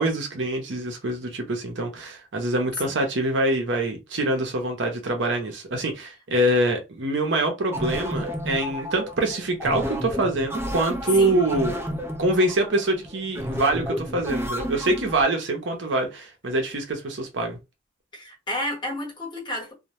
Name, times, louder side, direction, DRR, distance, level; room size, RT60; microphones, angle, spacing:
voice 1, 0.0-11.8 12.2-17.6, right 1 dB, 75° right, 0.7 m, -25 dB
sound 1, 7.7-15.2, equal, 15° right, 0.5 m, -31 dB
voice 2, 11.1-11.4 18.1-19.7, left 1 dB, 25° left, 1.1 m, -31 dB
2.2 x 2.1 x 2.9 m
head